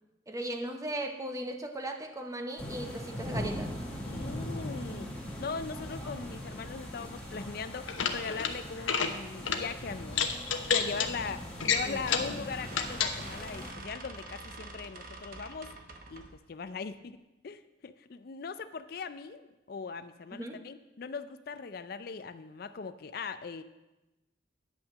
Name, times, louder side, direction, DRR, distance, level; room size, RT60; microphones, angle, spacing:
voice 1, 0.3-3.7 10.9-11.0 11.6-12.1 20.3-20.6, right 1 dB, 15° right, 5 dB, 0.8 m, -37 dB
sound 1, 2.6-13.7, equal, 5° left, 1.9 m, -40 dB
voice 2, 4.0-5.1 5.4-10.3 10.7-15.7 16.1-23.6, left 5 dB, 50° left, 12 dB, 0.4 m, -40 dB
sound 2, 7.9-8.5 8.8-9.1 9.5-9.6 10.1-11.1 11.6-12.3 12.7-13.1, left 6 dB, 90° left, 0.9 m, -29 dB
sound 3, 12.3-16.4, right 2 dB, 45° right, 1.0 m, -46 dB
10.0 x 5.8 x 7.3 m, 1.0 s
head